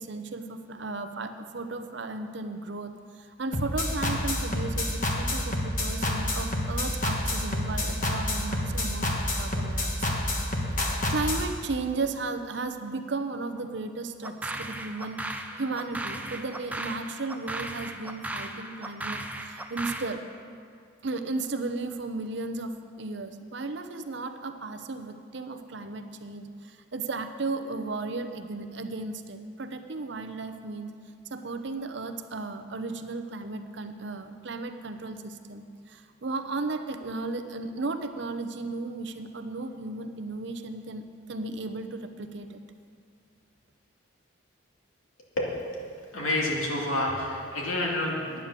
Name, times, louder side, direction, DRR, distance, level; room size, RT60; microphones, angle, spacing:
voice 1, 0.0-9.1 9.4-10.2 10.7-20.2 21.0-30.9 31.3-42.6, right 3 dB, 55° right, 8 dB, 0.7 m, -35 dB
sound 1, 3.5-11.4, left 1 dB, 40° left, 1.3 m, -28 dB
sound 2, 14.2-20.2, right 1 dB, 5° right, 0.4 m, -36 dB
voice 2, 46.1-48.4, left 1 dB, 85° left, -3 dB, 2.4 m, -28 dB
10.5 x 8.9 x 6.7 m, 2.3 s
head